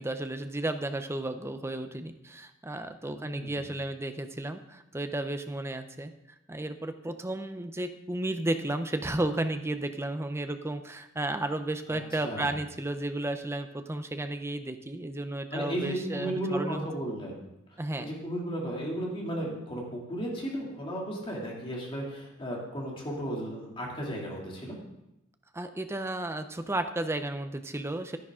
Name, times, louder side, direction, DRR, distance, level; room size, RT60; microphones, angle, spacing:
voice 1, 0.0-6.1 6.5-16.9 17.8-18.1 25.5-28.2, right 1 dB, 15° right, 8 dB, 0.6 m, -33 dB
voice 2, 3.1-3.7 11.9-12.5 15.5-17.4 18.0-24.7, right 1 dB, 25° left, -3 dB, 2.6 m, -34 dB
11.0 x 10.5 x 3.7 m, 0.87 s
head